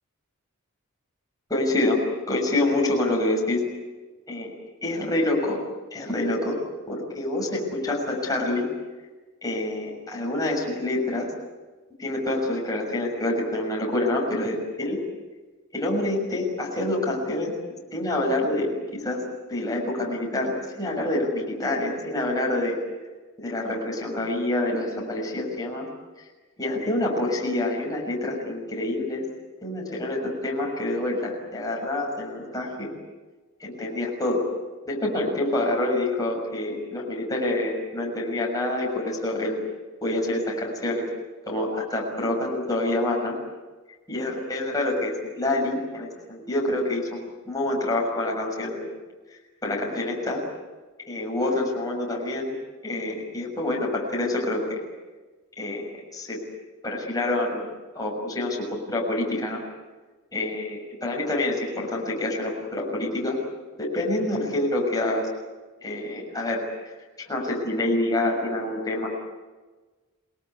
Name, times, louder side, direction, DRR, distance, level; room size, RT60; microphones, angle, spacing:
voice 1, 1.5-3.6 4.3-4.5 4.8-5.6 5.9-6.6 6.9-8.7 9.4-11.3 12.0-15.0 15.7-17.5 17.9-22.8 23.4-25.9 26.6-29.2 29.6-32.9 33.6-34.5 34.9-39.6 40.0-41.1 41.5-43.3 44.1-48.9 49.6-50.4 51.1-52.6 52.8-54.8 55.6-56.4 56.8-57.6 57.9-59.6 60.3-63.4 63.8-65.3 65.8-66.9 67.2-69.1, left 1 dB, 15° left, -2 dB, 6.5 m, -27 dB
28.5 x 19.5 x 9.6 m, 1.3 s
head